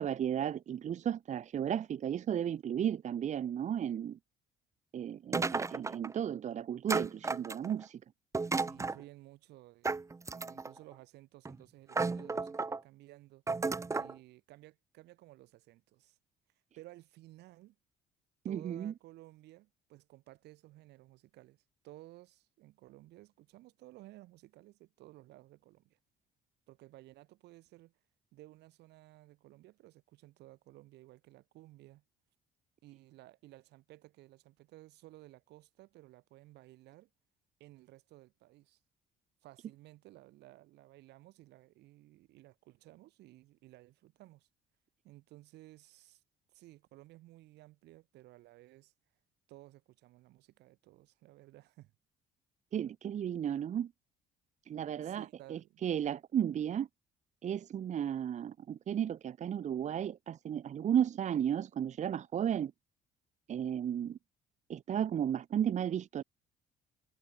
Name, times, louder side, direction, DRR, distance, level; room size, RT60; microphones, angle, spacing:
voice 1, 0.0-4.2 4.9-8.0 18.4-18.9 52.7-53.9 54.7-56.9 57.4-62.7 63.5-64.2 64.7-66.2, right 9 dB, 45° right, 0.9 m, -34 dB
sound 1, 5.3-6.1 6.9-7.8 8.3-9.0 9.8-10.8 11.4-11.6 11.9-12.8 13.5-14.1, right 3 dB, 15° right, 1.0 m, -33 dB
voice 2, 8.5-13.4 13.9-16.2 16.8-17.8 18.4-26.0 26.7-27.9 28.3-32.0 32.8-37.1 37.6-38.8 39.4-44.5 45.0-46.2 46.5-48.9 49.5-51.9 55.0-55.8, right 17 dB, 80° right, 7.1 m, -56 dB
cardioid pair, 110°, 17 cm